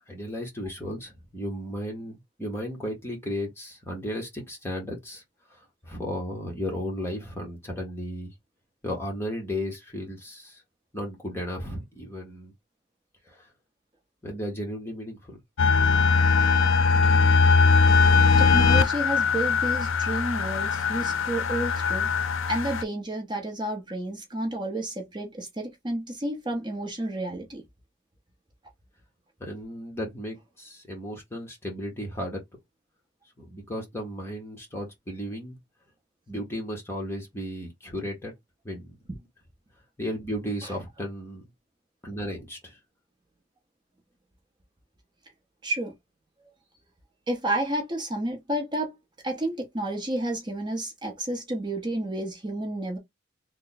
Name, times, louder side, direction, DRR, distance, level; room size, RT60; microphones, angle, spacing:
voice 1, 0.1-5.2 5.5-8.3 8.8-10.6 10.9-12.5 13.3-13.5 14.2-15.4 29.4-32.4 33.4-35.6 36.3-38.3 38.6-39.0 40.0-41.5 42.0-42.8, equal, 10° left, 1.1 m, -34 dB
sound 1, 15.6-22.8, left 4 dB, 85° left, 0.4 m, -21 dB
voice 2, 18.4-22.1 22.5-27.6 45.6-45.9 47.3-49.0 49.2-53.0, right 1 dB, 25° right, 0.9 m, -31 dB
3.3 x 2.2 x 4.0 m
head